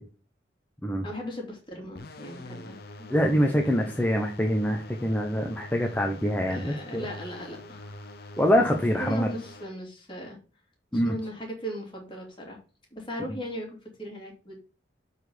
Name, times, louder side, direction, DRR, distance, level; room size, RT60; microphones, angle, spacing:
voice 1, 1.0-2.8 3.6-4.0 6.5-8.3 9.0-10.4 10.9-12.6 12.9-13.7 14.0-14.6, equal, 25° left, 0 dB, 2.6 m, -38 dB
sound 1, 2.0-9.6, left 1 dB, 55° left, 0.9 m, -44 dB
voice 2, 3.1-7.1 8.4-9.3 10.9-11.2, equal, 10° left, 1 dB, 0.8 m, -25 dB
7.6 x 4.2 x 6.8 m, 0.36 s
head